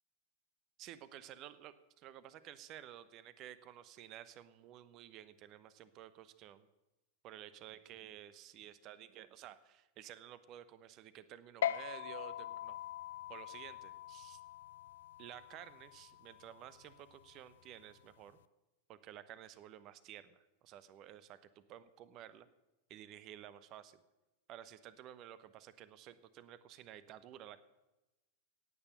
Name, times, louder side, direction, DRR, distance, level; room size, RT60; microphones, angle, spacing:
voice 1, 0.8-6.7 7.2-12.8 13.3-14.4 15.2-18.4 18.9-22.5 22.9-24.0 24.5-27.6, right 11 dB, 35° right, 16 dB, 1.0 m, -53 dB
sound 1, 11.6-18.4, left 11 dB, 60° left, 0.4 m, -43 dB
17.0 x 8.9 x 6.8 m, 1.0 s
figure-of-eight pair, 90°, 0 cm